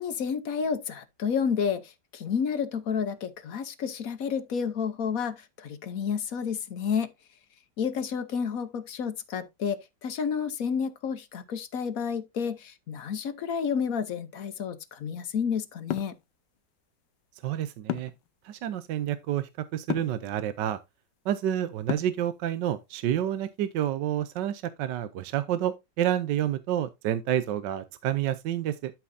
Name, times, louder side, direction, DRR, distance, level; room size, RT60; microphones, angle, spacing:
voice 1, 0.0-7.1 7.8-16.1, left 6 dB, 55° left, 1.2 m, -30 dB
sound 1, 15.9-16.2 17.9-18.3 19.9-20.2 21.9-22.3, left 13 dB, 90° left, 1.3 m, -31 dB
voice 2, 17.4-18.1 18.4-20.8 21.2-28.9, right 11 dB, 75° right, 1.4 m, -29 dB
12.0 x 5.8 x 2.7 m
omnidirectional pair, 2.0 m